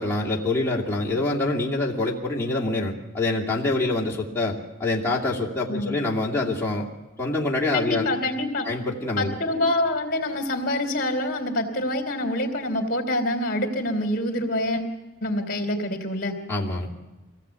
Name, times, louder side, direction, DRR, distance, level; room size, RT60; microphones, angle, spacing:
voice 1, 0.0-6.9 7.2-8.1 8.6-9.4 16.5-16.9, left 2 dB, 10° left, -4 dB, 2.3 m, -25 dB
voice 2, 5.7-6.0 7.7-8.7 9.2-14.9 15.2-16.3, left 1 dB, 45° left, 4 dB, 3.3 m, -26 dB
24.0 x 17.5 x 8.2 m, 1.1 s
head